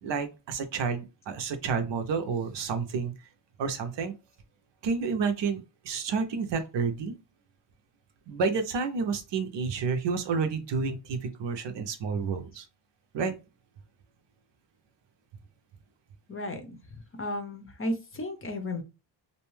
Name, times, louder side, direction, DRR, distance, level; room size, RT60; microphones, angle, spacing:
voice 1, 0.0-3.1 3.6-4.1 4.8-7.1 8.3-12.7 13.1-13.3, right 5 dB, 75° right, 7 dB, 0.7 m, -30 dB
voice 2, 16.3-16.6 17.2-18.8, left 1 dB, 30° left, 6 dB, 0.6 m, -33 dB
2.6 x 2.2 x 3.1 m, 0.28 s
cardioid pair, 110°, 44 cm